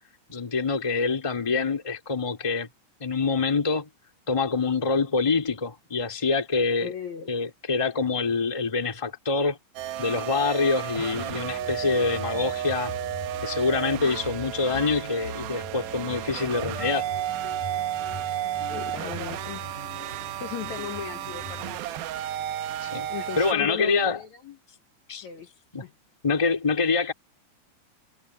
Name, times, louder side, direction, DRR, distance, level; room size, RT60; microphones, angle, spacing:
voice 1, 0.3-2.7 3.0-3.9 4.3-6.9 7.3-9.6 10.0-12.9 13.4-17.1 22.8-23.1 23.4-24.2 25.1-25.3 25.7-25.8 26.2-27.1, left 4 dB, 10° left, 1.6 m, -25 dB
voice 2, 6.8-7.3 18.7-19.6 20.4-22.3 23.1-24.6 25.1-25.5 25.8-25.9, left 8 dB, 90° left, 1.6 m, -37 dB
sound 1, 9.8-23.5, right 12 dB, 75° right, 2.4 m, -33 dB
sound 2, 11.0-21.8, left 4 dB, 45° left, 3.2 m, -42 dB
omnidirectional pair, 5.4 m